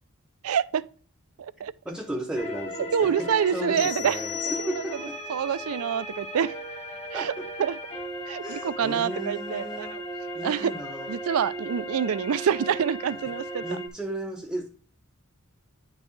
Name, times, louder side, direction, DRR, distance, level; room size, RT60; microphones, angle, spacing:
voice 1, 0.4-0.8 1.4-1.7 2.9-4.2 4.6-4.8 5.3-6.6 7.1-7.3 7.6-7.8 8.3-9.9 10.4-10.7 11.1-13.8, right 8 dB, 80° right, 0.4 m, -26 dB
voice 2, 1.8-5.2 7.1-7.5 8.4-10.0 10.3-11.2 13.6-14.7, right 1 dB, 5° right, 0.6 m, -35 dB
sound 1, 2.3-13.9, equal, 30° left, 1.5 m, -36 dB
sound 2, 3.8-5.3, left 9 dB, 60° left, 1.9 m, -35 dB
10.0 x 5.3 x 3.2 m
head